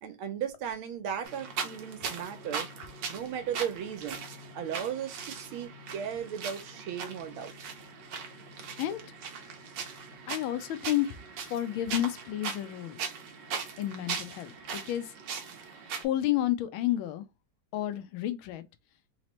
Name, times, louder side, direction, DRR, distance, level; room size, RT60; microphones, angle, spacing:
voice 1, 0.0-2.7 3.1-4.2 4.5-7.5, right 8 dB, 85° right, 1.6 m, -36 dB
sound 1, 1.2-16.0, right 6 dB, 65° right, 1.4 m, -40 dB
voice 2, 10.3-11.1 11.5-13.0 13.8-15.1 16.0-17.2 17.7-18.6, left 13 dB, 80° left, 1.4 m, -30 dB
4.0 x 2.9 x 3.0 m
omnidirectional pair, 2.3 m